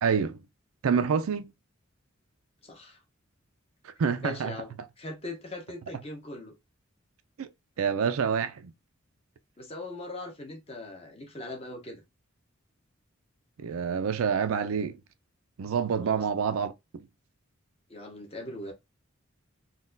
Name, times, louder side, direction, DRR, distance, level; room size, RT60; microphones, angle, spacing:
voice 1, 0.0-0.4 0.8-1.5 3.8-4.5 7.4-7.5 7.8-8.7 13.6-15.0 15.6-16.7, right 6 dB, 80° right, 0.4 m, -27 dB
voice 2, 2.6-3.0 4.2-6.5 9.6-12.0 15.9-16.2 17.9-18.7, left 2 dB, 30° left, 0.7 m, -40 dB
3.8 x 2.3 x 2.5 m
head